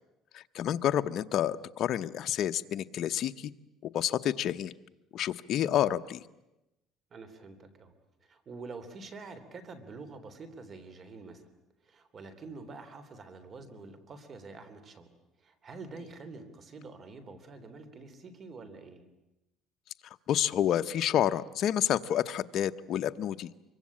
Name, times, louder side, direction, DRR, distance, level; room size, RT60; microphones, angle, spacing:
voice 1, 0.3-3.5 3.8-4.7 5.1-6.2 20.3-23.5, left 11 dB, 55° left, 9 dB, 0.9 m, -29 dB
voice 2, 7.1-7.9 8.2-11.5 11.8-15.1 15.4-19.1, right 3 dB, 35° right, 10 dB, 3.5 m, -47 dB
25.0 x 24.0 x 8.7 m, 0.94 s
cardioid pair, 130°, 0 cm